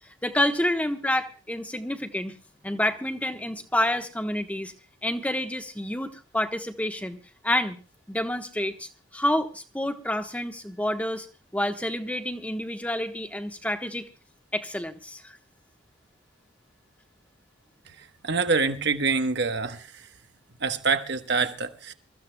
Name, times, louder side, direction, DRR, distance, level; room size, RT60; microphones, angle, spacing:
voice 1, 0.2-2.3 2.6-4.7 5.0-7.2 7.4-7.8 8.1-11.3 11.5-14.1 14.5-15.4, left 1 dB, 5° left, 1.2 m, -28 dB
voice 2, 18.2-20.1 20.6-21.9, right 4 dB, 60° right, 1.2 m, -26 dB
27.5 x 14.5 x 2.3 m
head